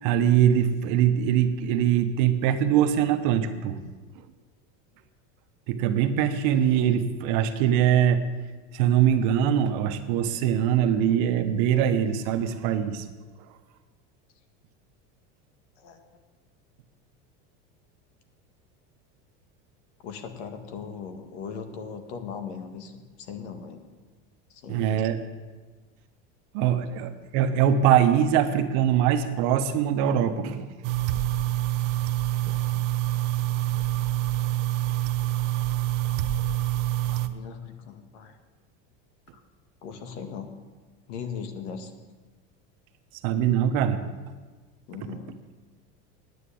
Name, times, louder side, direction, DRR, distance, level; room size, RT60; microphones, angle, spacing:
voice 1, 0.0-3.8 5.7-8.2 8.7-13.0 24.7-25.2 26.5-30.7 43.2-44.0, right 9 dB, 55° right, 8 dB, 1.1 m, -22 dB
voice 2, 15.8-16.2 20.0-23.8 24.5-25.0 37.1-38.4 39.3-39.4 39.8-40.5 41.1-41.9 44.9-45.3, left 6 dB, 70° left, 7 dB, 1.8 m, -39 dB
sound 1, 30.8-37.3, right 14 dB, 75° right, 0.9 m, -26 dB
9.7 x 9.7 x 8.5 m, 1.4 s
supercardioid pair, 155°, 35 cm